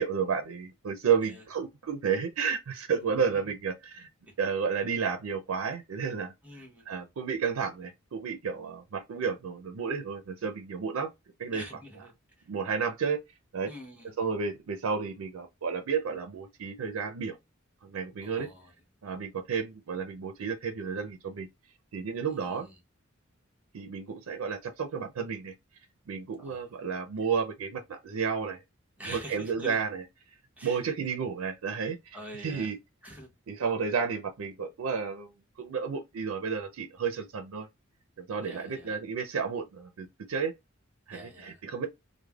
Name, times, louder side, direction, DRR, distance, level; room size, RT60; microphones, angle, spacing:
voice 1, 0.0-4.1 4.4-6.3 6.9-11.1 11.4-11.6 12.5-13.2 13.5-13.7 14.2-17.4 17.8-18.5 19.0-21.5 21.9-22.7 23.7-25.5 26.1-28.6 29.1-30.0 30.6-32.2 32.4-32.8 33.5-35.3 35.6-37.7 38.2-40.5 41.1-41.9, right 6 dB, 90° right, 0.4 m, -32 dB
voice 2, 3.0-3.5 4.3-4.4 6.4-6.9 11.5-12.5 13.6-14.1 18.2-18.7 22.4-22.8 26.4-26.8 27.2-27.4 29.0-29.8 30.6-30.8 32.1-32.7 33.0-33.3 38.3-39.0 41.1-41.6, equal, 5° right, 0.9 m, -46 dB
3.2 x 2.1 x 2.2 m
head